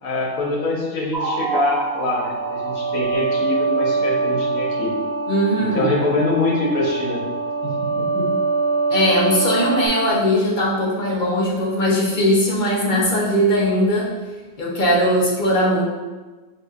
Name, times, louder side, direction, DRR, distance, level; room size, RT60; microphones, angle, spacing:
voice 1, 0.0-4.9 5.6-7.2 7.6-8.3, left 2 dB, 70° left, -2 dB, 1.3 m, -24 dB
sound 1, 1.1-9.9, right 4 dB, 15° right, 0.7 m, -24 dB
voice 2, 5.3-5.9 8.9-14.1 14.6-15.8, equal, 45° left, -4 dB, 0.6 m, -19 dB
6.4 x 2.7 x 2.4 m, 1.3 s
omnidirectional pair, 1.6 m